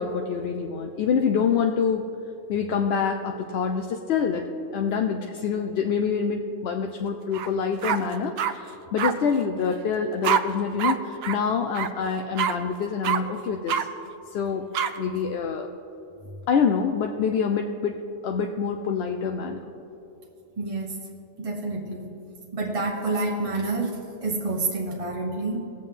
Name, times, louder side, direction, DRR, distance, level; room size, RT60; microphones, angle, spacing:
voice 1, 0.0-2.1 2.5-13.9 14.3-14.7 15.0-15.7 16.5-19.7, left 6 dB, 60° left, 4 dB, 0.7 m, -26 dB
Dog barking, 7.3-7.5 7.8-8.5 9.0-9.1 10.2-10.4 10.8-11.0 11.2-11.4 11.7-11.9 12.4-12.5 13.0-13.2 13.7-13.8 14.7-14.9, right 8 dB, 65° right, 0.7 m, -24 dB
voice 2, 20.6-21.0 21.4-22.2 22.5-25.6, right 2 dB, 30° right, -2 dB, 1.0 m, -28 dB
19.5 x 7.6 x 3.7 m, 2.9 s
omnidirectional pair, 1.4 m